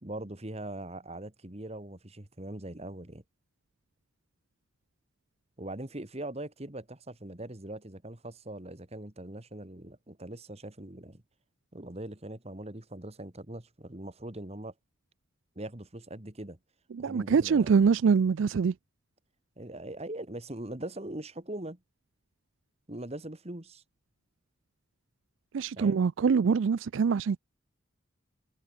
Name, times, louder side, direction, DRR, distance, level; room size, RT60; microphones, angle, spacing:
voice 1, 0.0-3.2 5.6-11.2 11.7-14.7 15.6-16.6 17.0-17.9 19.6-21.8 22.9-23.8 25.8-26.0, right 1 dB, 30° right, 1.8 m, -41 dB
voice 2, 16.9-18.7 25.5-27.4, right 5 dB, 70° right, 0.4 m, -24 dB
head